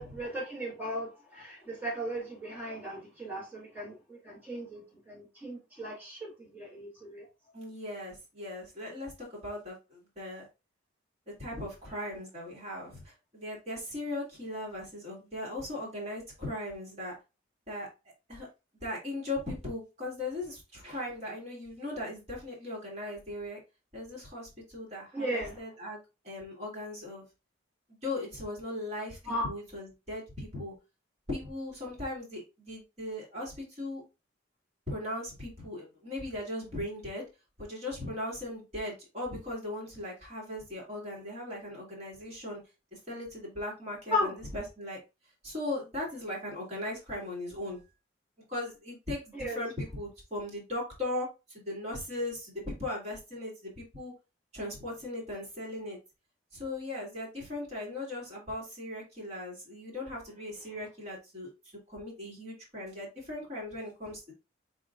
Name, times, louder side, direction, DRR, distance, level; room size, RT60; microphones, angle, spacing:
voice 1, 0.0-7.3 25.1-25.6 29.3-29.4 44.1-44.3 49.3-49.6, equal, 10° right, 1.7 m, -36 dB
voice 2, 7.5-10.5 11.4-17.1 17.7-17.9 18.3-18.5 18.8-23.6 23.9-26.0 26.2-27.2 27.9-30.7 31.3-34.0 34.9-37.3 37.6-42.6 42.9-45.0 45.4-47.8 48.5-54.1 54.5-56.0 56.5-61.5 61.9-64.3, left 1 dB, 35° right, 2.2 m, -38 dB
4.9 x 4.2 x 2.5 m
head